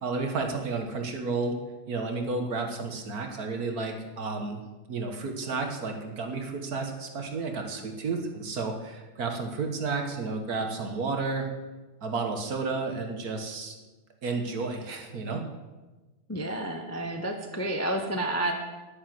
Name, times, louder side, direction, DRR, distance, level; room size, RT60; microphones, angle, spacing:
voice 1, 0.0-1.6 1.9-4.6 4.9-11.5 12.0-13.8 14.2-15.4, right 4 dB, 50° right, 4 dB, 1.8 m, -32 dB
voice 2, 16.3-18.5, right 1 dB, 15° left, 4 dB, 0.5 m, -30 dB
10.5 x 9.9 x 7.6 m, 1.2 s
omnidirectional pair, 2.1 m